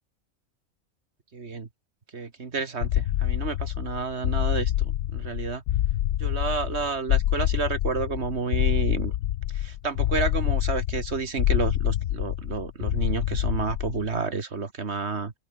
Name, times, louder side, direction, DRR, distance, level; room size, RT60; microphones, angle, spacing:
voice 1, 1.3-1.7 2.1-5.6 6.2-9.1 9.5-15.3, right 4 dB, 50° right, 2.0 m, -30 dB
sound 1, 2.8-14.2, left 13 dB, 85° left, 1.1 m, -26 dB
omnidirectional pair, 1.4 m